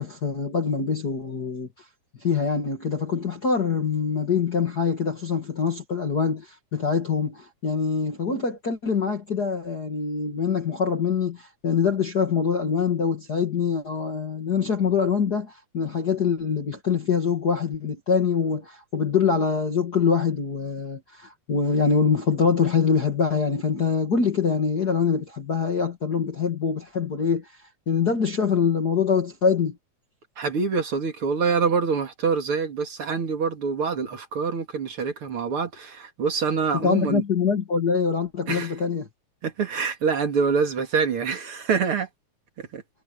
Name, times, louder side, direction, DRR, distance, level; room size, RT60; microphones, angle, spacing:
voice 1, 0.0-1.7 2.2-27.5 27.9-29.8 36.7-39.1, left 6 dB, 35° left, 2.4 m, -24 dB
voice 2, 30.4-37.2 38.5-38.7 39.4-42.1 42.6-42.8, right 5 dB, 45° right, 3.1 m, -25 dB
omnidirectional pair, 3.4 m